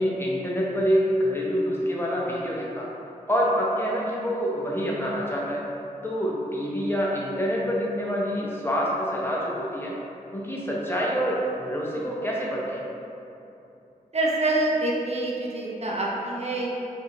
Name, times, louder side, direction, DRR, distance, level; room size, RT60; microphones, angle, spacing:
voice 1, 0.0-2.9 3.3-5.7 6.0-10.0 10.3-12.8, equal, 15° left, -5 dB, 0.8 m, -26 dB
voice 2, 14.1-16.7, right 2 dB, 45° right, -4 dB, 0.6 m, -26 dB
4.7 x 2.7 x 2.7 m, 2.9 s
cardioid pair, 45°, 15 cm